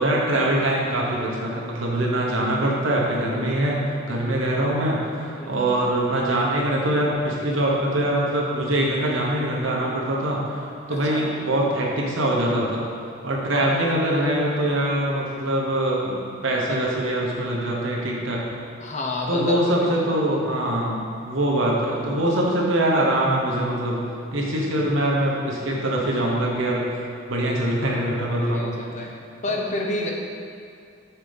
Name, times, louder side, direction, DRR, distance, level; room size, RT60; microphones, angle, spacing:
voice 1, 0.0-3.8 4.1-12.8 13.2-16.1 16.4-18.4 19.3-24.0 24.3-28.8, right 1 dB, 70° right, -3 dB, 1.2 m, -23 dB
voice 2, 10.9-11.3 13.5-14.3 16.7-16.8 18.8-19.6 28.4-29.1 29.4-30.1, left 2 dB, 35° left, -1 dB, 0.7 m, -30 dB
5.9 x 4.5 x 5.2 m, 2.4 s
head